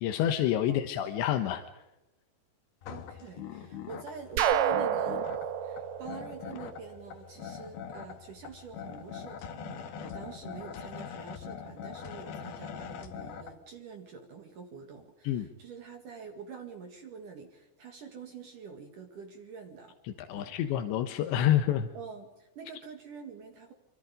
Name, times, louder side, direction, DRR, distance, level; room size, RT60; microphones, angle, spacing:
voice 1, 0.0-1.6 15.3-15.5 20.1-21.9, left 11 dB, 90° left, 6 dB, 3.5 m, -28 dB
sound 1, 2.8-13.5, left 7 dB, 65° left, 3.5 m, -43 dB
voice 2, 2.9-5.2 5.6-20.0 20.3-20.6 21.9-23.7, right 6 dB, 55° right, 4 dB, 3.2 m, -46 dB
sound 2, 4.4-7.2, right 9 dB, 85° right, 3.6 m, -29 dB
26.5 x 26.0 x 5.2 m, 0.98 s
omnidirectional pair, 5.0 m